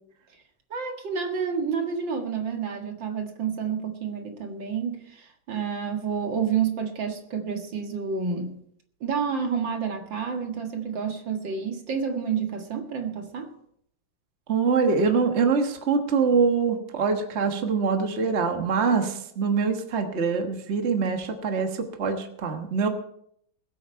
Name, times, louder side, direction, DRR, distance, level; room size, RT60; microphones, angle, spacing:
voice 1, 0.7-8.6 9.0-13.5, right 6 dB, 75° right, 3 dB, 2.5 m, -29 dB
voice 2, 14.5-22.9, right 5 dB, 40° right, 5 dB, 1.5 m, -24 dB
21.5 x 8.4 x 4.5 m, 0.70 s
omnidirectional pair, 2.0 m